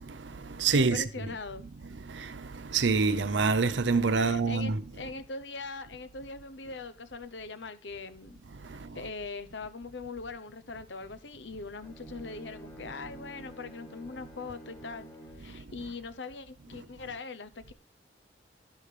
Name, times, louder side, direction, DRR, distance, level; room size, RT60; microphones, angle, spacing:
voice 1, 0.0-1.0 2.1-4.8 8.6-9.0 15.5-15.6, right 4 dB, 75° right, 0.7 m, -27 dB
voice 2, 0.7-1.7 4.2-8.4 8.9-15.1 15.4-17.7, left 3 dB, 70° left, 0.9 m, -41 dB
Bowed string instrument, 11.7-15.6, right 1 dB, 15° left, 1.5 m, -49 dB
12.0 x 11.5 x 3.4 m
head